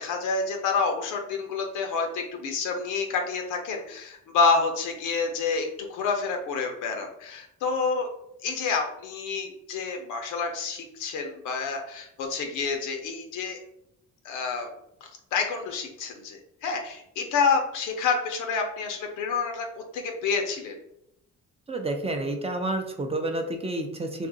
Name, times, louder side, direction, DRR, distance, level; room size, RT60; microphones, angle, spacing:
voice 1, 0.0-8.1 8.4-13.6 14.2-14.7 15.0-20.8, left 4 dB, 90° left, 3 dB, 0.7 m, -28 dB
voice 2, 21.7-24.3, right 2 dB, 20° right, 4 dB, 0.5 m, -29 dB
2.6 x 2.5 x 3.8 m, 0.80 s
cardioid pair, 90°, 30 cm